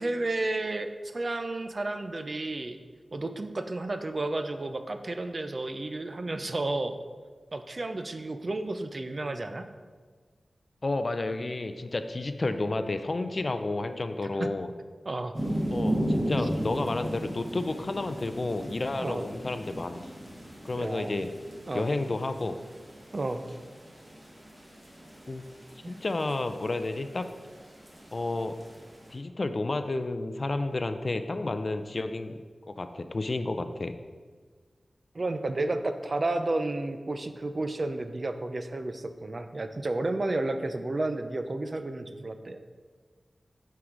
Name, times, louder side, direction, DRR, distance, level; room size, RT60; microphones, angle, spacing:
voice 1, 0.0-2.8 3.1-7.0 7.5-9.7 14.3-14.5 15.1-15.3 19.0-19.2 20.8-21.2 21.7-21.9 23.1-23.4 25.8-25.9 35.1-42.6, right 2 dB, 45° right, 8 dB, 0.5 m, -32 dB
voice 2, 10.8-14.7 15.7-20.0 20.6-21.3 21.7-22.6 25.3-25.5 25.9-27.3 28.1-28.6 29.1-33.9, left 2 dB, 45° left, 9 dB, 0.4 m, -31 dB
sound 1, 15.3-29.1, equal, 25° right, 1.8 m, -36 dB
9.3 x 4.7 x 3.8 m, 1.5 s
wide cardioid pair, 90°, 0 cm